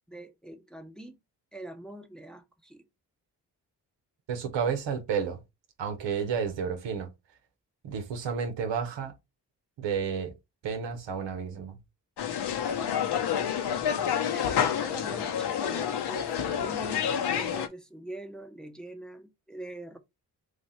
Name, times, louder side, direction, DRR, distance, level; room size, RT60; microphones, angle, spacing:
voice 1, 0.1-1.2 1.5-2.9 14.3-20.0, right 1 dB, ahead, 0.7 m, -43 dB
voice 2, 4.3-5.4 5.8-7.1 7.8-9.1 9.8-10.3 10.6-11.8, right 6 dB, 80° right, 0.9 m, -31 dB
sound 1, 12.2-17.7, left 8 dB, 65° left, 0.7 m, -29 dB
3.2 x 2.5 x 4.2 m
supercardioid pair, 45°, 43 cm